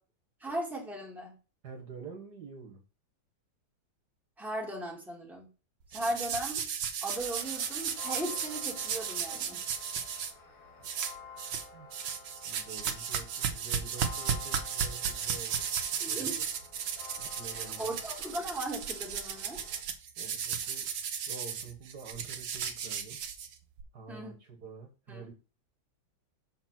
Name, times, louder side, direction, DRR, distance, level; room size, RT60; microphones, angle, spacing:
voice 1, 0.4-1.3 4.4-5.5 5.9-6.6 7.0-9.6 16.0-16.4 17.5-19.6 24.1-24.3 25.1-25.3, right 1 dB, ahead, -2 dB, 2.2 m, -37 dB
voice 2, 1.6-2.8 5.9-6.1 9.5-9.6 11.7-11.9 12.4-15.7 16.1-16.3 17.2-18.0 20.2-20.9 21.3-23.2 23.9-25.3, right 5 dB, 55° right, 1 dB, 1.8 m, -47 dB
sound 1, 5.9-10.3 10.8-11.7 11.9-23.8, right 7 dB, 80° right, 1.7 m, -35 dB
sound 2, 7.1-19.8, left 5 dB, 80° left, 3.3 m, -51 dB
6.8 x 4.3 x 5.9 m, 0.34 s
omnidirectional pair, 2.1 m